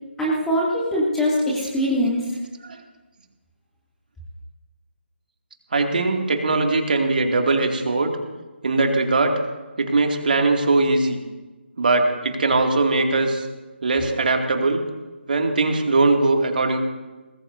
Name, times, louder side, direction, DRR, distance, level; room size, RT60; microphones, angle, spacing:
voice 1, 0.2-2.3, equal, 5° left, -7 dB, 2.5 m, -22 dB
voice 2, 5.7-8.2 8.6-9.4 9.8-11.2 11.8-13.4 13.8-14.8 15.3-16.8, right 3 dB, 50° right, 3 dB, 2.4 m, -20 dB
23.5 x 20.0 x 2.7 m, 1.2 s
figure-of-eight pair, 150°, 6 cm